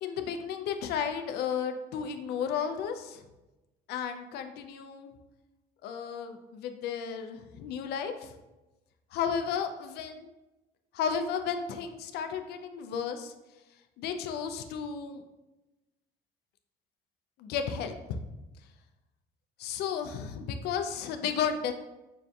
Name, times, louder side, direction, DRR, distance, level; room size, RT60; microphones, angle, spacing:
voice 1, 0.0-3.2 3.9-5.1 5.8-8.3 9.1-10.3 10.9-13.3 14.0-15.2 17.4-18.2 19.6-21.7, left 7 dB, 75° left, 7 dB, 0.4 m, -33 dB
5.5 x 2.5 x 2.3 m, 1.0 s
cardioid pair, 110°, 17 cm